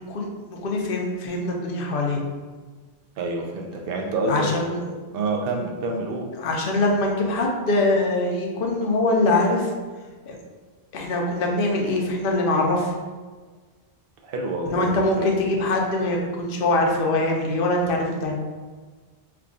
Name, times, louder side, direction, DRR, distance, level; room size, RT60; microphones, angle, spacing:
voice 1, 0.1-2.2 3.7-3.8 4.3-4.8 6.4-9.7 10.3-10.4 10.9-12.9 14.7-18.3, left 2 dB, 65° left, 0 dB, 0.8 m, -23 dB
voice 2, 3.2-4.5 5.1-6.3 14.2-14.9 15.2-15.3, right 2 dB, 70° right, 1 dB, 0.7 m, -27 dB
3.4 x 2.2 x 3.7 m, 1.4 s
omnidirectional pair, 1.0 m